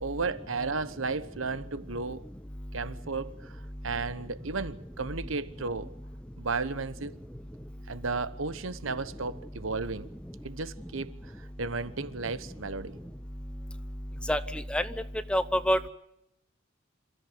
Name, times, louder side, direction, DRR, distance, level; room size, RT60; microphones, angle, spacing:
voice 1, 0.0-2.2 2.7-5.9 6.4-7.2 7.9-10.1 10.4-13.0, right 4 dB, 85° right, 1.1 m, -34 dB
voice 2, 14.3-14.9 15.3-15.8, equal, 5° left, 0.8 m, -26 dB
27.0 x 14.0 x 9.5 m
head